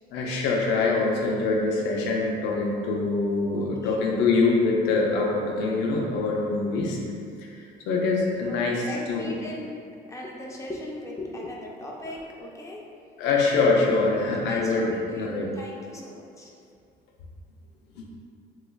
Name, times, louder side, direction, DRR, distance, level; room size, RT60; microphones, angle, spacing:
voice 1, 0.1-7.0 7.4-9.2 13.2-15.5, left 3 dB, 90° left, -1 dB, 0.5 m, -24 dB
voice 2, 3.5-4.0 8.5-9.8 10.1-12.8 14.2-16.5, left 1 dB, 20° left, -2 dB, 0.5 m, -38 dB
3.3 x 3.1 x 2.2 m, 2.3 s
cardioid pair, 110°, 17 cm